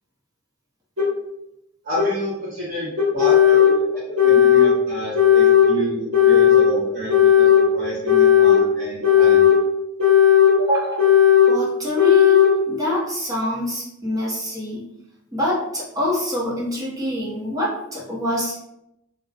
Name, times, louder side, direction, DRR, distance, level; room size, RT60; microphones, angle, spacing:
sound 1, 1.0-1.1 2.0-2.1 3.0-3.7 4.2-4.7 5.1-5.7 6.1-6.7 7.1-7.6 8.1-8.6 9.0-9.6 10.0-10.5 11.0-11.5 12.0-12.5, left 10 dB, 80° right, 1.1 m, -14 dB
voice 1, 1.8-9.4, left 1 dB, 50° right, -11 dB, 1.0 m, -29 dB
voice 2, 10.6-11.1 11.5-14.8 15.3-18.6, left 1 dB, 15° right, -5 dB, 0.9 m, -25 dB
2.3 x 2.3 x 3.3 m, 0.83 s
head